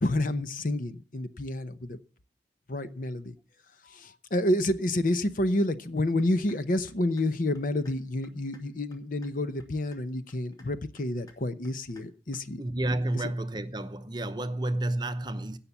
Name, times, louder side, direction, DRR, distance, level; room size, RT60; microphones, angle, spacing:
voice 1, 0.0-2.0 2.7-3.3 3.8-12.6, left 1 dB, 50° left, 0.8 m, -29 dB
sound 1, 6.2-6.6 6.9-7.2 7.5-7.9 8.2-8.6 8.9-9.3 9.6-10.0 10.3-10.7 11.0-11.3 11.6-12.0 12.3-12.4, left 2 dB, 20° left, 2.2 m, -56 dB
voice 2, 12.6-15.6, right 1 dB, 25° right, 0.8 m, -30 dB
16.5 x 5.8 x 7.1 m
head